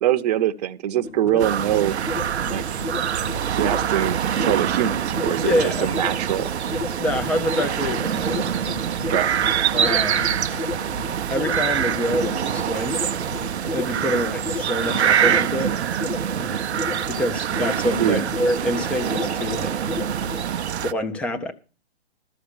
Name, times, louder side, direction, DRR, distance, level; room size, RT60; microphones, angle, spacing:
voice 1, 0.0-2.0 2.5-2.8 3.5-6.5 9.1-9.3 18.0-18.2, right 11 dB, 40° right, 0.8 m, -23 dB
sound 1, 1.0-20.5, left 3 dB, 85° left, 4.0 m, -33 dB
sound 2, 1.4-20.9, right 9 dB, 85° right, 0.6 m, -25 dB
voice 2, 5.4-5.9 7.0-8.5 9.7-10.6 11.3-13.0 13.7-15.7 17.1-19.7 20.9-21.5, left 1 dB, 5° left, 0.5 m, -26 dB
13.0 x 4.9 x 7.9 m
hypercardioid pair, 145°, 32 cm